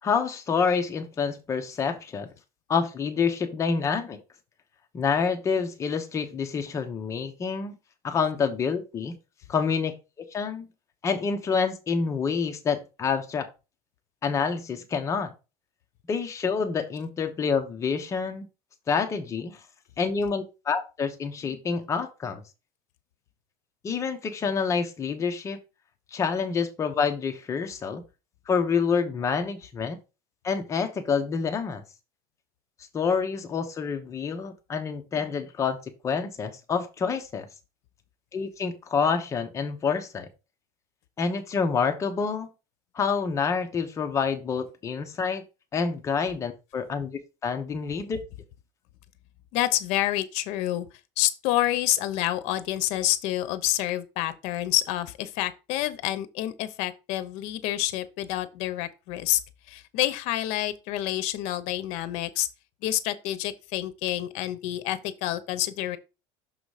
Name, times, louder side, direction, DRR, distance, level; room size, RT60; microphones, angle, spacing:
voice 1, 0.0-2.3 2.7-4.2 4.9-7.7 8.0-9.1 9.5-9.9 10.3-10.7 11.0-13.5 14.2-15.3 16.1-18.5 18.9-19.6 20.0-22.4 23.8-25.6 26.1-28.0 28.5-30.0 30.4-31.8 32.9-35.8 36.0-37.5 38.3-40.3 41.2-42.5 42.9-45.4 45.7-47.1 47.4-48.2, left 5 dB, 25° left, 1.0 m, -27 dB
voice 2, 49.5-50.9 51.2-59.4 59.7-62.5 62.8-66.0, left 14 dB, 65° left, 0.9 m, -28 dB
6.4 x 3.9 x 4.9 m
cardioid pair, 150°, 12 cm